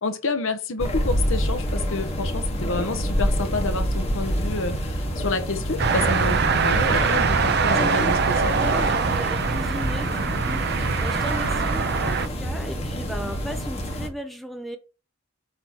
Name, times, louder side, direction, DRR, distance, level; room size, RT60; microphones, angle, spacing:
voice 1, 0.0-8.6, left 3 dB, 60° left, 0.9 m, -29 dB
sound 1, 0.8-14.1, equal, 30° left, 1.1 m, -27 dB
sound 2, 5.8-12.3, right 5 dB, 45° right, 0.5 m, -23 dB
voice 2, 7.7-8.1 8.5-14.8, equal, ahead, 0.7 m, -36 dB
8.4 x 2.9 x 6.1 m
head